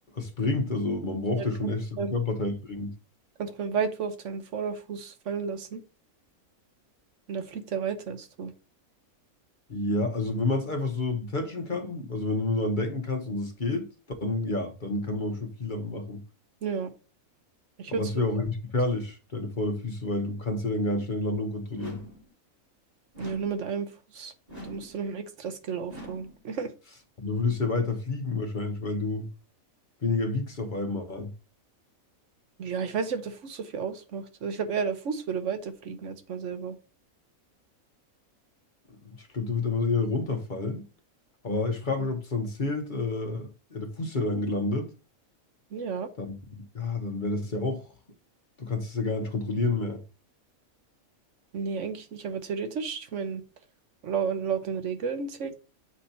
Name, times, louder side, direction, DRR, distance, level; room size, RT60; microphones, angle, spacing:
voice 1, 0.1-2.9 9.7-13.9 14.2-16.2 17.9-22.0 27.2-29.3 30.0-31.3 38.9-40.9 41.4-44.9 46.2-47.9 48.6-50.0, left 2 dB, 40° left, 1.0 m, -29 dB
voice 2, 3.4-5.8 7.3-8.5 16.6-16.9 17.8-18.0 23.2-24.3 24.6-26.7 32.6-36.8 45.7-46.1 51.5-53.4 54.0-55.5, right 6 dB, 65° right, 1.1 m, -32 dB
sound 1, 21.7-22.3 23.1-23.7 24.5-25.0 25.9-26.4, equal, 30° right, 1.8 m, -44 dB
7.3 x 4.3 x 4.2 m
omnidirectional pair, 1.5 m